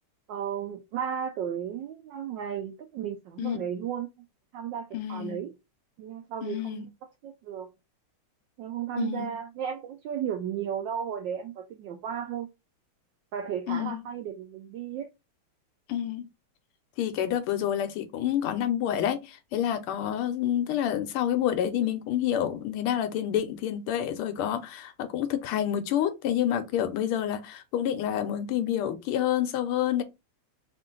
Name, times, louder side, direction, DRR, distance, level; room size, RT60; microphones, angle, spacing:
voice 1, 0.3-4.1 4.5-5.5 6.0-7.7 8.6-12.5 13.3-15.1, right 8 dB, 75° right, 1.0 m, -34 dB
voice 2, 4.9-5.4 6.4-6.9 9.0-9.3 13.7-14.0 15.9-16.2 17.0-30.0, left 10 dB, 85° left, 1.5 m, -28 dB
3.7 x 2.5 x 3.6 m
omnidirectional pair, 2.4 m